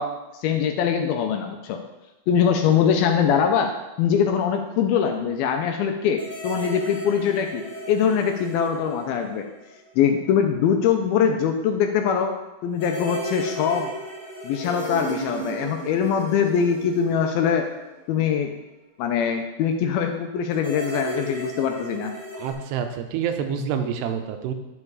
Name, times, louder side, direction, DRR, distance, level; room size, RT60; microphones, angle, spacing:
voice 1, 0.0-1.8 2.3-9.5 10.0-12.3 12.6-13.9 14.4-17.7 18.1-18.5 19.0-22.1, left 7 dB, 80° left, 4 dB, 2.3 m, -22 dB
sound 1, 6.2-9.9 10.2-10.3 12.8-18.2 20.5-22.5, right 1 dB, 30° left, 2.6 m, -35 dB
voice 2, 22.4-24.5, right 7 dB, 85° right, 6 dB, 2.8 m, -27 dB
9.9 x 5.3 x 4.8 m, 1.0 s
omnidirectional pair, 4.7 m